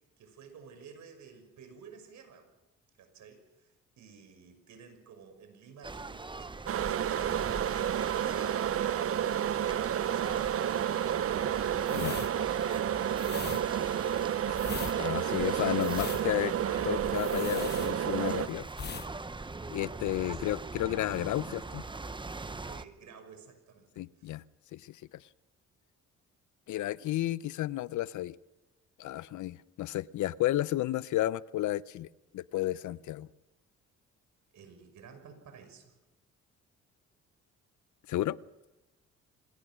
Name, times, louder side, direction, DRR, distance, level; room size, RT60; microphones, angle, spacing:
voice 1, 0.2-2.5 2.9-14.3 20.2-20.4 22.7-24.4 34.5-35.9, right 6 dB, 70° right, 7 dB, 6.1 m, -53 dB
sound 1, 5.8-22.8, right 3 dB, 15° right, 0.9 m, -42 dB
sound 2, 6.7-18.5, right 10 dB, 50° right, 0.7 m, -30 dB
sound 3, 11.9-18.4 18.7-19.1 19.4-19.6, left 6 dB, 35° left, 1.0 m, -41 dB
voice 2, 14.9-16.5 16.8-18.7 19.7-21.9 24.0-24.4 24.7-25.0 26.7-28.3 29.0-32.1 32.3-33.3 38.1-38.4, left 14 dB, 75° left, 19 dB, 0.7 m, -32 dB
26.5 x 20.0 x 6.3 m, 1.0 s
cardioid pair, 90°, 30 cm